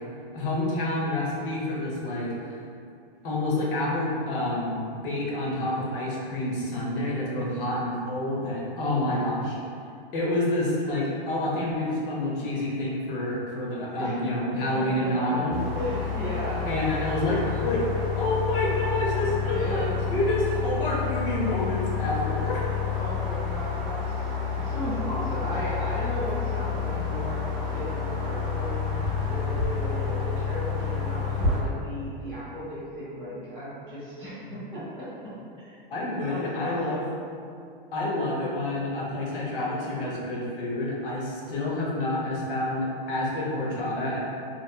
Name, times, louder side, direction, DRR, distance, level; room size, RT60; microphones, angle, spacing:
voice 1, 0.3-2.6 3.2-9.6 10.1-15.6 16.7-17.9 18.1-22.7 35.9-37.1 37.9-44.2, left 1 dB, 65° left, -4 dB, 0.8 m, -28 dB
voice 2, 13.8-16.7 19.5-20.0 22.9-35.6 36.3-37.1, equal, 5° left, -14 dB, 0.5 m, -36 dB
sound 1, 15.5-31.6, left 6 dB, 30° right, 0.7 m, -29 dB
2.9 x 2.3 x 2.2 m, 2.4 s
supercardioid pair, 150°, 29 cm